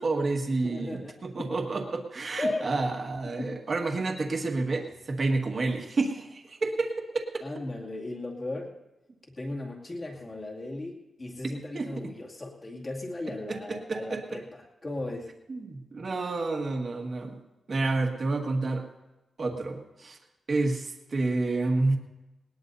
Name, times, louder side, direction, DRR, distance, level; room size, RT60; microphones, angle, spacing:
voice 1, 0.0-7.3 11.7-11.9 13.5-14.4 15.5-17.4 17.7-18.9 19.4-20.2 20.5-22.0, right 3 dB, 40° right, 2 dB, 1.8 m, -29 dB
voice 2, 0.6-1.6 2.4-2.7 3.2-3.6 7.4-8.8 9.4-15.3, left 2 dB, 30° left, -2 dB, 2.4 m, -36 dB
19.5 x 19.5 x 2.7 m, 1.0 s
wide cardioid pair, 175°, 0 cm